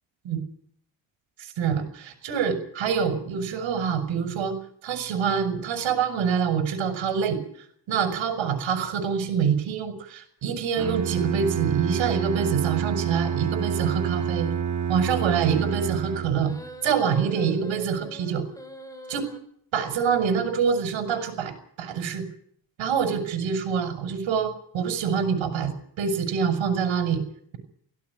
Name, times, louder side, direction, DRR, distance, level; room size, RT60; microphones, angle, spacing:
voice 1, 1.4-4.6 4.8-7.4 7.9-14.5 14.9-16.5 16.8-18.4 19.1-19.3 19.7-21.5 21.8-22.2 22.8-27.2, right 7 dB, 80° right, 8 dB, 6.1 m, -25 dB
Bowed string instrument, 10.8-16.6, right 8 dB, 40° right, 1.7 m, -28 dB
sound 1, 16.3-19.4, left 1 dB, 5° left, 5.4 m, -43 dB
17.0 x 16.5 x 9.8 m, 0.62 s
cardioid pair, 100°, 45 cm